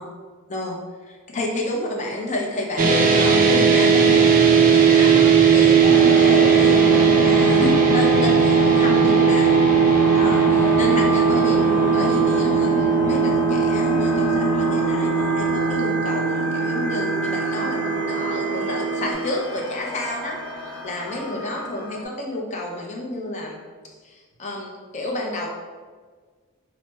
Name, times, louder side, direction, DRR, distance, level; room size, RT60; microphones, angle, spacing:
voice 1, 1.0-9.5 10.1-20.4 20.8-23.6 24.0-25.5, left 1 dB, 35° left, -1 dB, 0.5 m, -30 dB
sound 1, 2.8-19.1, right 6 dB, 40° right, 0.4 m, -18 dB
sound 2, 5.8-22.0, left 2 dB, 80° left, 0.5 m, -27 dB
3.0 x 2.0 x 3.3 m, 1.5 s
head